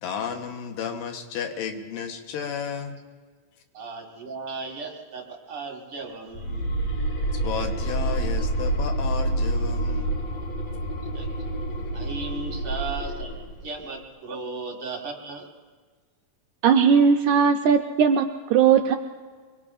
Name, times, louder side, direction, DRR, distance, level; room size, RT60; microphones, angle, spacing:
voice 1, 0.0-3.0 7.3-10.1, left 7 dB, 90° left, 5 dB, 2.8 m, -32 dB
voice 2, 3.7-6.6 11.1-11.3 11.9-13.3 13.6-15.5, right 3 dB, 50° right, 0 dB, 2.2 m, -36 dB
sound 1, 6.3-13.6, right 1 dB, 60° left, 2.7 m, -28 dB
voice 3, 16.6-19.0, right 7 dB, 80° right, 5 dB, 1.8 m, -18 dB
24.5 x 22.5 x 2.5 m, 1.5 s
omnidirectional pair, 3.8 m